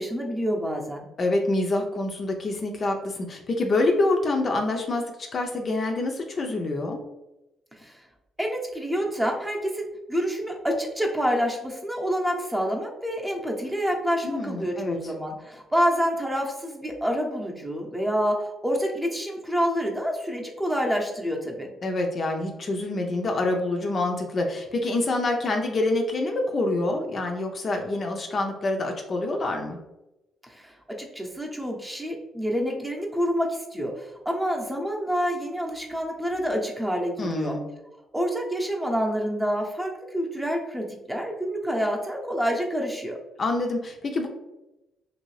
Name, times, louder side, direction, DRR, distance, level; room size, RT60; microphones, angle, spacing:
voice 1, 0.0-1.0 7.7-8.0 8.4-21.7 30.4-37.6 38.1-43.2, equal, 10° right, 0 dB, 0.7 m, -27 dB
voice 2, 1.2-7.0 14.2-15.0 21.8-29.8 37.2-37.6 43.4-44.3, left 2 dB, 45° left, 3 dB, 0.4 m, -26 dB
2.8 x 2.6 x 3.1 m, 0.96 s
cardioid pair, 90°, 0 cm